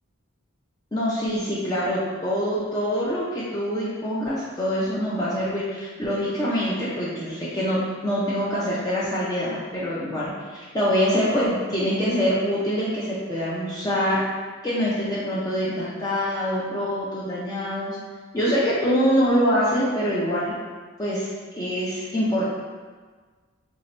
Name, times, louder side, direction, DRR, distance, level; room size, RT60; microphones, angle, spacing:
voice 1, 0.9-14.2 14.6-18.0 18.3-20.5 21.0-22.5, equal, 20° left, -8 dB, 0.5 m, -25 dB
2.8 x 2.8 x 4.3 m, 1.5 s
head